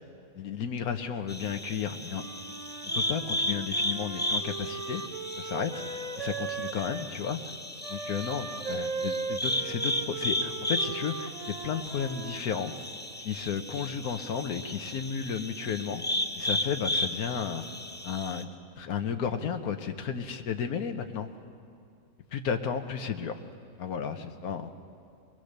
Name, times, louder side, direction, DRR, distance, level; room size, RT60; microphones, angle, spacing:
voice 1, 0.4-2.2 2.9-5.0 5.4-5.7 6.2-7.4 7.9-12.7 13.2-16.0 16.4-17.6 18.0-18.5 18.8-21.3 22.3-23.4 23.8-24.7, left 7 dB, 90° left, 7 dB, 1.4 m, -33 dB
sound 1, 1.3-18.4, left 1 dB, 10° left, 0.4 m, -34 dB
Wind instrument woodwind instrument, 2.1-7.1 7.8-12.8, right 5 dB, 45° right, 0.5 m, -38 dB
22.5 x 20.0 x 6.6 m, 2.3 s
omnidirectional pair, 1.5 m